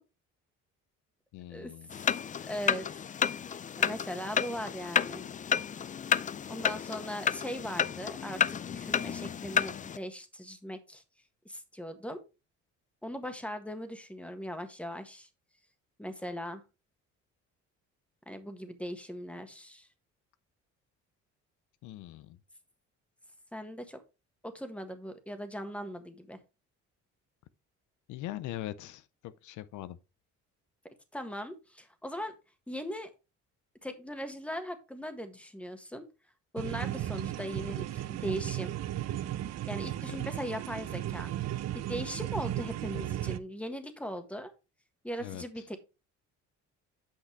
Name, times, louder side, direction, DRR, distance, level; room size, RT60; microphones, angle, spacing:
voice 1, 1.3-1.9 21.8-22.4 28.1-30.0 40.1-40.2 45.2-45.6, left 14 dB, 80° left, 0.6 m, -41 dB
sound 1, 1.9-10.0, left 8 dB, 25° left, 0.4 m, -31 dB
voice 2, 2.4-2.9 3.8-5.2 6.5-11.0 11.4-12.2 13.0-15.3 16.0-16.6 18.3-19.9 23.5-24.0 24.4-26.4 31.1-32.3 32.7-33.1 33.8-36.1 36.5-38.7 39.7-41.3 41.7-44.5 45.0-45.8, equal, 5° left, 1.5 m, -39 dB
sound 2, 36.6-43.4, right 13 dB, 60° right, 0.7 m, -35 dB
8.5 x 5.8 x 3.3 m
cardioid pair, 90°, 30 cm